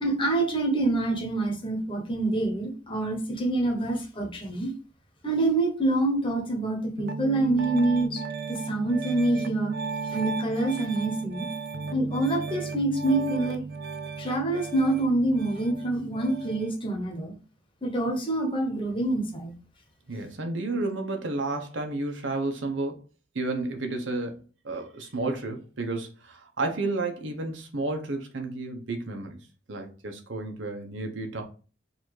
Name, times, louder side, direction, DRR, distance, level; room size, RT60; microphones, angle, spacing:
voice 1, 0.0-4.7 5.2-8.2 8.5-9.8 10.1-11.5 11.9-13.6 14.2-17.3 17.8-19.5, right 2 dB, 30° left, 1.1 m, -26 dB
Piano, 7.0-16.7, right 4 dB, 60° right, 0.5 m, -35 dB
voice 2, 20.1-23.0 23.3-29.4 29.7-31.4, right 2 dB, 90° right, 1.0 m, -31 dB
4.0 x 2.7 x 4.7 m
head